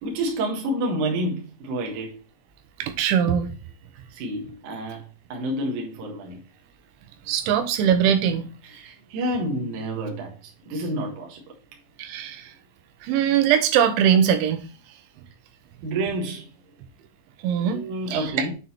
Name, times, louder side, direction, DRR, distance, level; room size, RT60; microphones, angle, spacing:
voice 1, 0.0-2.2 4.1-6.4 8.6-11.6 15.8-16.6 17.4-18.5, right 1 dB, 55° right, 2.5 m, -29 dB
voice 2, 2.8-3.5 7.3-8.5 12.0-12.5 13.0-14.6 17.4-17.8 18.1-18.5, right 8 dB, 90° right, 3.3 m, -21 dB
7.8 x 3.9 x 4.3 m
omnidirectional pair, 5.2 m